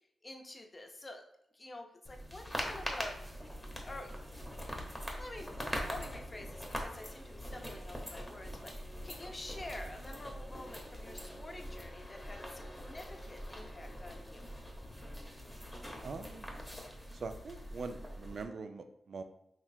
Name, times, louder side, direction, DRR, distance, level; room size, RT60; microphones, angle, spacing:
voice 1, 0.2-1.2 1.5-3.3 3.8-4.1 5.2-14.5, left 2 dB, 35° left, 3 dB, 0.7 m, -48 dB
sound 1, 2.0-18.4, equal, 10° left, 1.1 m, -43 dB
voice 2, 16.0-16.5 17.1-19.2, right 4 dB, 70° right, 8 dB, 0.3 m, -43 dB
3.8 x 3.0 x 2.7 m, 0.80 s
supercardioid pair, 45°, 0 cm